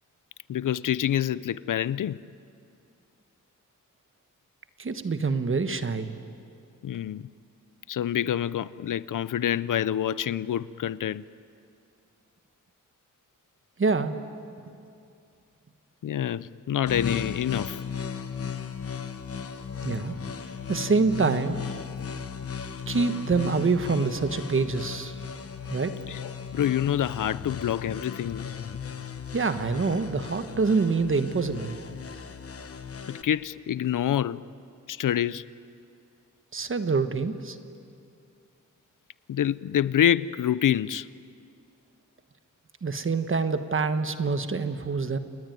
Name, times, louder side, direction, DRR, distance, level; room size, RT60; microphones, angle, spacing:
voice 1, 0.5-2.2 6.8-7.3 7.9-11.2 16.0-17.8 26.1-28.5 33.1-34.4 34.9-35.4 39.3-41.1, left 10 dB, 85° left, 0.6 m, -27 dB
voice 2, 4.8-6.1 13.8-14.1 19.8-20.1 20.7-21.6 22.9-25.1 25.7-26.0 29.3-31.8 36.5-37.6 42.8-45.2, right 4 dB, 40° right, 1.3 m, -26 dB
sound 1, 16.9-33.2, left 7 dB, 45° left, 1.1 m, -36 dB
29.5 x 20.0 x 9.3 m
wide cardioid pair, 155°, 31 cm